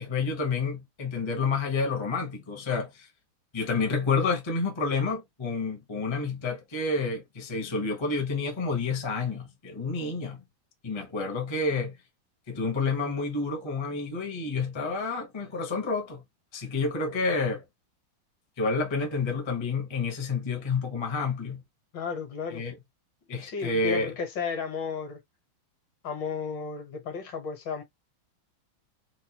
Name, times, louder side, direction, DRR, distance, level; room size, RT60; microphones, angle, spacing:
voice 1, 0.0-3.1 3.5-10.4 10.8-12.0 12.5-16.2 16.5-17.6 18.6-21.6 22.5-22.8 23.3-24.1, left 4 dB, 20° left, 0.8 m, -29 dB
voice 2, 21.9-22.7 23.3-25.2 26.0-27.8, left 5 dB, 65° left, 1.9 m, -34 dB
4.5 x 2.5 x 2.9 m
omnidirectional pair, 2.2 m